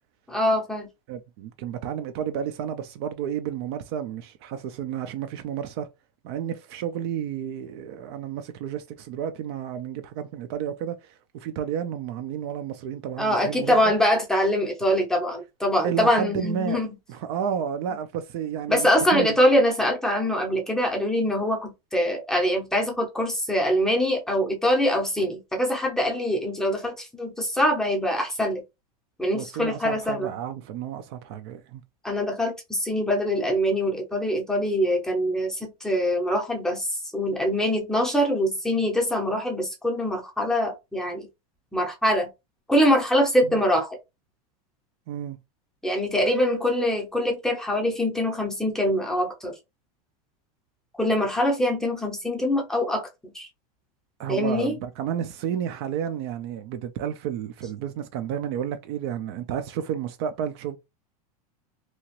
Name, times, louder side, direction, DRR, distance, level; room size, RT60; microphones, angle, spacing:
voice 1, 0.3-0.9 13.2-16.9 18.7-28.6 29.2-30.3 32.0-36.9 37.1-41.3 41.7-42.3 42.7-44.0 45.8-49.5 51.0-53.5 54.3-54.7, equal, 5° left, 0.7 m, -24 dB
voice 2, 1.1-5.9 6.2-13.8 15.8-16.8 17.1-19.4 29.3-31.8 43.4-43.6 45.1-45.4 54.2-60.8, right 9 dB, 45° right, 0.4 m, -31 dB
2.8 x 2.4 x 2.9 m
supercardioid pair, 160°, 19 cm